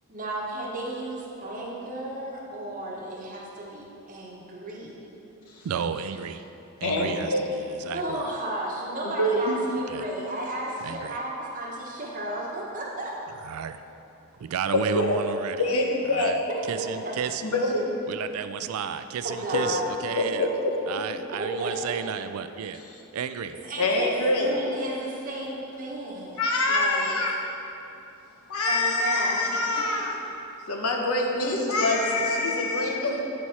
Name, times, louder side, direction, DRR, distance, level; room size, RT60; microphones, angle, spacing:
voice 1, 0.1-5.1 7.9-13.1 16.7-17.2 19.2-19.9 21.4-22.0 23.6-27.1 28.7-29.5 29.7-29.9, right 1 dB, 35° right, 1.0 m, -34 dB
voice 2, 5.6-6.4 6.8-8.2 9.9-10.0 10.8-11.2 13.4-13.8 14.4-15.6 16.1-16.4 16.7-17.4 18.1-20.5 20.9-22.8 23.1-23.5, right 7 dB, 70° right, 0.3 m, -32 dB
voice 3, 6.8-7.4 9.0-9.6 14.7-15.2 15.6-16.3 17.4-17.8 19.5-19.7 20.2-20.7 23.8-24.5 26.4-27.3 28.5-30.1 30.7-33.2, left 2 dB, 75° left, 0.9 m, -25 dB
8.3 x 4.6 x 4.2 m
head